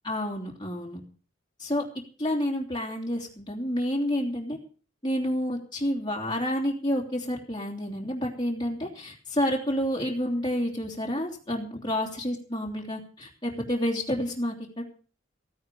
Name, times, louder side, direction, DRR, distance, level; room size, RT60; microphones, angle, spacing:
voice 1, 0.0-1.0 1.6-1.8 2.2-4.6 5.0-14.8, equal, 25° left, -1 dB, 2.9 m, -29 dB
15.5 x 9.5 x 6.7 m, 0.40 s
head